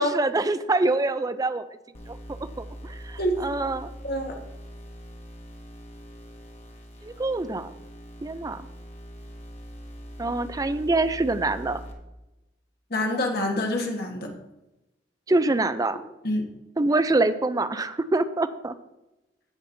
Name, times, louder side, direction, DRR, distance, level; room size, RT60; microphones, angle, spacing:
voice 1, 0.0-1.7 2.1-3.9 7.0-7.7 8.2-8.6 10.2-11.8 15.3-16.0 16.8-18.7, right 2 dB, 20° right, 13 dB, 0.4 m, -25 dB
sound 1, 1.9-11.9, equal, 35° left, 1.5 m, -42 dB
voice 2, 4.0-4.3 12.9-14.3 16.2-16.4, left 1 dB, 60° left, 2 dB, 1.5 m, -26 dB
16.5 x 5.9 x 2.7 m, 0.97 s
head